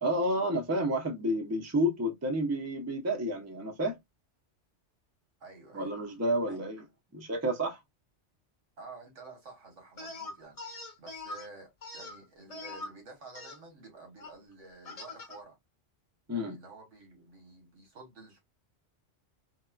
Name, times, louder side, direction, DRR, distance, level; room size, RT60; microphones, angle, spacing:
voice 1, 0.0-4.0 5.7-6.8 7.1-7.8 16.3-16.6, equal, 20° right, 0.5 m, -30 dB
voice 2, 5.4-5.9 6.4-6.6 8.8-15.6 16.3-18.4, right 3 dB, 85° right, 1.6 m, -51 dB
sound 1, 10.0-11.5 11.8-12.9 13.3-13.6 14.2-14.3 14.8-15.4, left 2 dB, 35° left, 0.7 m, -42 dB
4.1 x 2.1 x 2.2 m
omnidirectional pair, 1.2 m